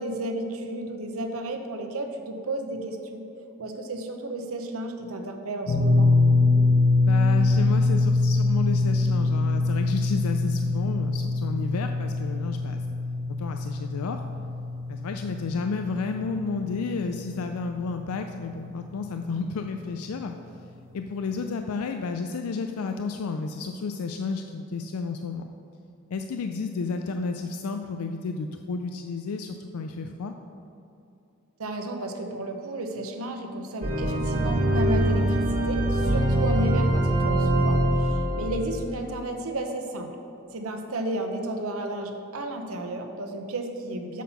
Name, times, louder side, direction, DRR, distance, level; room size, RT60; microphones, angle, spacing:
voice 1, 0.0-3.3 3.6-6.1 31.6-40.2 40.5-44.2, right 1 dB, 75° right, 4 dB, 0.8 m, -33 dB
sound 1, 5.7-17.9 18.2-18.4 20.1-20.2, left 3 dB, 60° left, 1.2 m, -24 dB
voice 2, 7.1-14.2 14.9-20.3 20.9-25.5 26.1-30.3, left 4 dB, 90° left, 6 dB, 0.4 m, -31 dB
sound 2, 33.8-39.0, right 1 dB, 40° right, 1.3 m, -23 dB
7.3 x 5.9 x 5.5 m, 2.7 s
head